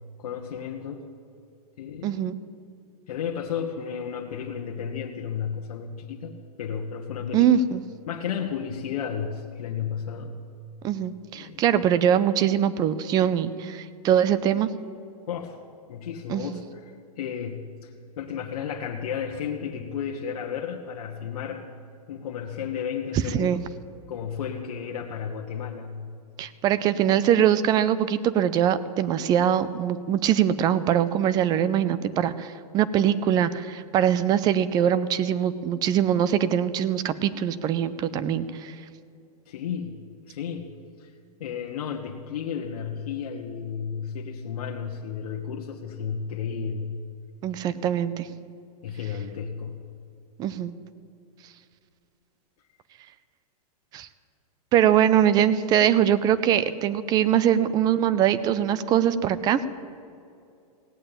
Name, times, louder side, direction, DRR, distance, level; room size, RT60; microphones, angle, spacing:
voice 1, 0.2-1.1 1.8-2.2 3.1-7.5 8.1-10.4 11.3-11.7 15.3-15.6 15.9-21.6 22.1-23.6 24.1-26.1 39.5-41.1 41.4-46.9 48.8-49.8, left 7 dB, 65° left, 1 dB, 1.2 m, -33 dB
voice 2, 2.0-2.4 7.3-7.8 10.8-14.7 16.3-16.6 23.3-23.6 26.4-38.7 47.4-48.3 50.4-50.7 53.9-54.1 54.7-59.6, right 9 dB, 20° right, 15 dB, 0.5 m, -22 dB
17.0 x 8.6 x 8.8 m, 2.5 s
hypercardioid pair, 150°, 20 cm